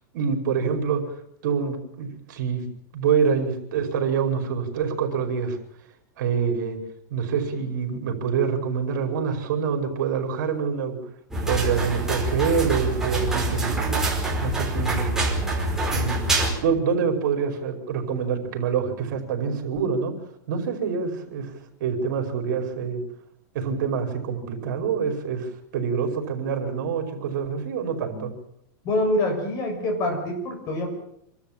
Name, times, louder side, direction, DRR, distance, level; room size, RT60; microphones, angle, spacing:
voice 1, 0.1-1.1 1.4-2.7 2.9-5.6 6.2-6.8 7.1-11.0 11.5-14.0 14.4-15.2 15.9-16.2 16.6-20.1 20.5-21.5 21.8-23.0 23.5-28.3, right 6 dB, 65° right, 4 dB, 5.3 m, -26 dB
sound 1, 11.3-16.5, right 2 dB, 5° right, 5.0 m, -25 dB
voice 2, 28.8-30.9, left 1 dB, 35° left, 4 dB, 7.3 m, -25 dB
26.5 x 13.0 x 9.0 m, 0.74 s
supercardioid pair, 145°, 11 cm